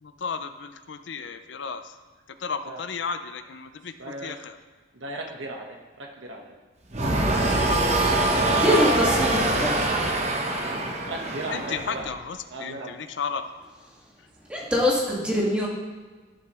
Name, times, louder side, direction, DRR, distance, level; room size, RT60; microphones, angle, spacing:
voice 1, 0.0-1.9 2.4-4.6 11.5-13.4, left 5 dB, 65° left, 10 dB, 0.5 m, -34 dB
voice 2, 4.0-4.3 4.9-6.5 11.1-12.1 12.5-12.9, right 2 dB, 75° right, 1 dB, 1.3 m, -36 dB
sound 1, 6.9-12.1, right 2 dB, 35° right, 1.0 m, -24 dB
voice 3, 8.5-9.8 14.5-15.7, equal, 5° right, -5 dB, 1.8 m, -24 dB
13.5 x 7.0 x 3.1 m, 1.4 s
head